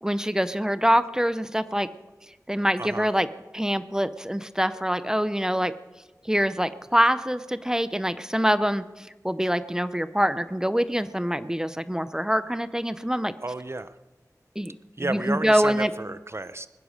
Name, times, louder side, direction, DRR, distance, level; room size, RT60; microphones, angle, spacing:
voice 1, 0.0-1.9 2.5-3.3 3.5-5.8 6.2-13.3 14.6-14.7 15.0-15.9, equal, 10° right, 14 dB, 0.6 m, -25 dB
voice 2, 2.8-3.1 13.4-14.0 15.0-16.7, right 2 dB, 45° right, 13 dB, 0.8 m, -32 dB
20.0 x 10.0 x 6.5 m, 1.2 s
wide cardioid pair, 50°, 6 cm